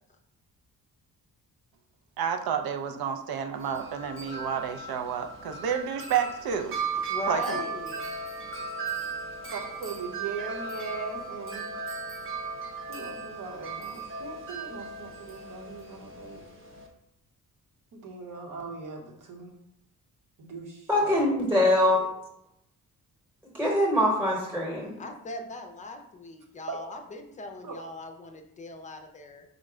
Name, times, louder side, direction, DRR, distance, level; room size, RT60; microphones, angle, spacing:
voice 1, 2.2-6.8 7.3-7.6, right 7 dB, 85° right, 6 dB, 0.6 m, -30 dB
Wind chime, 3.5-16.9, right 4 dB, 35° right, 0.7 m, -37 dB
voice 2, 7.1-8.0 25.0-29.4, left 2 dB, 20° left, 4 dB, 0.4 m, -39 dB
voice 3, 9.5-11.7 12.9-16.4 17.9-19.5 20.4-21.6 21.9-22.1 26.7-26.8 27.6-27.8, right 5 dB, 65° right, 1 dB, 1.0 m, -39 dB
voice 4, 20.9-22.0 23.5-25.0, left 1 dB, 5° right, -4 dB, 1.0 m, -23 dB
5.1 x 2.1 x 4.8 m, 0.76 s
wide cardioid pair, 170°, 35 cm